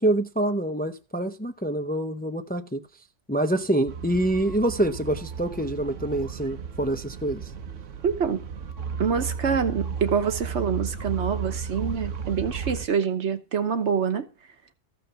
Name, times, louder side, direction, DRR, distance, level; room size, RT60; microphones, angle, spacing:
voice 1, 0.0-2.8 3.3-7.5, right 1 dB, 10° left, 0.6 m, -26 dB
sound 1, 3.9-12.9, right 6 dB, 90° right, 1.4 m, -34 dB
voice 2, 8.0-8.4 9.0-14.3, right 6 dB, 70° right, 1.4 m, -26 dB
14.0 x 5.9 x 6.8 m
omnidirectional pair, 1.2 m